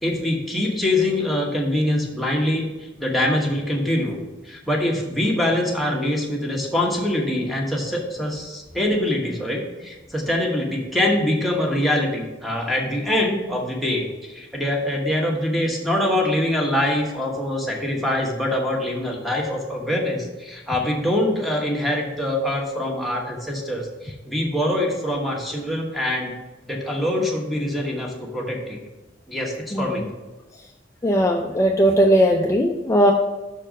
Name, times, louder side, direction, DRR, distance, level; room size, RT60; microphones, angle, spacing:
voice 1, 0.0-2.7 3.0-4.2 4.5-26.3 26.7-28.8 29.3-30.0, left 1 dB, ahead, 0 dB, 1.1 m, -24 dB
voice 2, 31.0-33.1, equal, 15° left, 1 dB, 0.4 m, -18 dB
6.2 x 4.4 x 6.3 m, 1.2 s
head